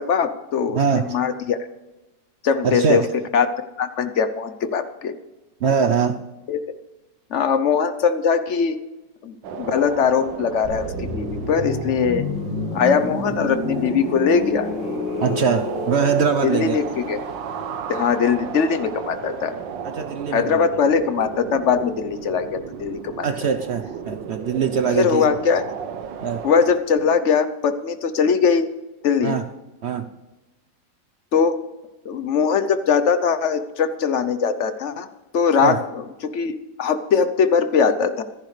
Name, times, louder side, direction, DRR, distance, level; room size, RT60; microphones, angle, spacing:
voice 1, 0.0-0.8 1.1-1.6 2.4-3.1 3.3-3.5 3.8-5.2 6.5-6.6 7.3-8.8 9.2-12.2 12.7-14.7 16.4-17.2 17.9-19.5 20.3-23.2 24.9-25.6 26.4-28.7 29.0-29.3 31.3-31.6 32.0-35.1 35.3-36.5 36.8-38.2, left 6 dB, 55° left, 0.9 m, -21 dB
voice 2, 0.7-1.2 2.6-3.1 5.6-6.2 15.2-16.8 19.8-20.7 23.2-25.4 26.2-26.4 29.2-29.5 29.8-30.1 35.6-35.8, right 6 dB, 65° right, 0.6 m, -22 dB
sound 1, 9.4-26.8, right 7 dB, 90° right, 1.6 m, -34 dB
sound 2, 10.6-20.3 20.6-20.8, left 3 dB, 80° left, 2.9 m, -31 dB
25.5 x 10.5 x 3.3 m
omnidirectional pair, 1.9 m